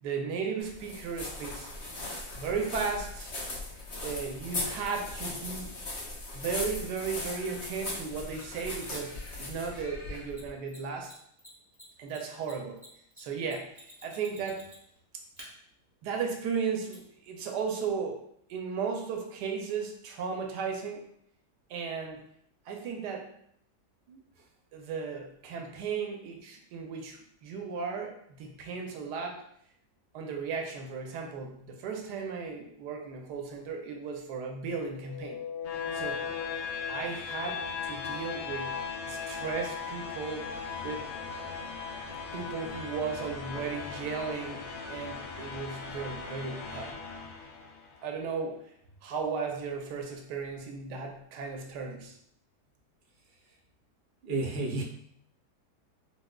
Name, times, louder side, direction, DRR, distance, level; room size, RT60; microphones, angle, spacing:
voice 1, 0.0-1.7 2.3-3.3 4.0-5.8 6.3-11.1 12.0-12.8 13.2-14.7 16.0-18.2 18.5-21.0 21.7-22.2 22.7-23.3 24.7-29.4 30.1-35.4 35.9-36.2 36.9-40.5 40.8-41.1 42.3-46.9 48.0-48.6 49.0-52.2, right 5 dB, 80° right, 3 dB, 1.2 m, -35 dB
sound 1, 0.6-10.5, left 2 dB, 45° left, 1.1 m, -39 dB
Mechanisms, 8.3-9.1 10.3-10.4 10.7-10.8 11.0-11.1 11.4-15.0 15.4-15.5 16.9-17.0, equal, 20° right, 0.6 m, -51 dB
sound 2, 34.9-47.9, left 5 dB, 80° left, 0.6 m, -38 dB
voice 2, 54.2-54.8, right 3 dB, 60° right, -1 dB, 0.6 m, -31 dB
4.2 x 2.3 x 2.2 m, 0.69 s
omnidirectional pair, 1.8 m